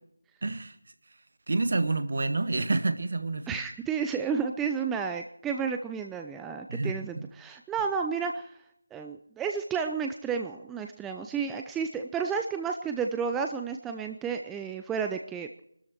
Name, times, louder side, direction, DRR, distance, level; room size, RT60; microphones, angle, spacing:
voice 1, 0.4-0.8 1.5-3.6 6.7-7.3, right 3 dB, 50° right, 10 dB, 1.7 m, -28 dB
voice 2, 3.5-8.5 8.9-15.5, right 6 dB, 5° right, 4 dB, 0.6 m, -31 dB
24.5 x 13.0 x 4.5 m, 0.72 s
figure-of-eight pair, 165°, 0 cm